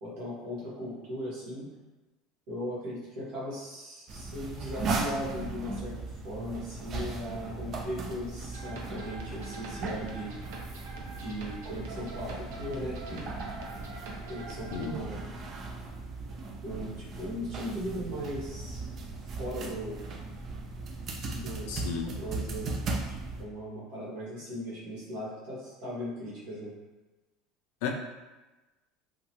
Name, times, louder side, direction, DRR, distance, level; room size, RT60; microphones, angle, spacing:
voice 1, 0.0-1.7 2.5-5.9 6.2-10.3 11.1-13.3 14.3-15.2 16.6-18.9 19.2-20.0 21.3-22.7 23.4-26.7, equal, 60° right, -7 dB, 1.3 m, -38 dB
sound 1, 4.1-23.4, right 3 dB, 30° right, 0.3 m, -37 dB
sound 2, 8.5-14.9, right 2 dB, 85° right, 0.5 m, -45 dB
voice 2, 21.7-22.1 27.8-27.9, left 6 dB, 65° left, 2 dB, 0.4 m, -33 dB
2.8 x 2.2 x 2.9 m, 1.1 s
cardioid pair, 170°, 0 cm